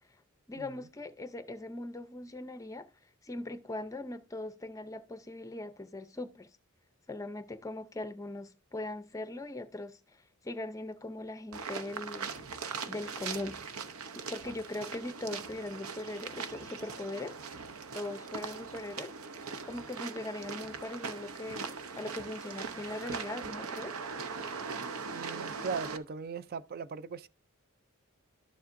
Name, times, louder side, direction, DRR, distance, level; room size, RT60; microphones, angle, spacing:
voice 1, 0.5-2.9 3.2-6.5 7.1-12.3 12.9-13.6 14.1-17.4 17.9-19.1 19.6-24.0, left 2 dB, 15° left, 0.5 m, -40 dB
sound 1, 11.5-26.0, right 5 dB, 75° right, 0.7 m, -40 dB
voice 2, 25.1-27.3, right 5 dB, 45° right, 0.4 m, -38 dB
12.5 x 7.1 x 2.5 m
head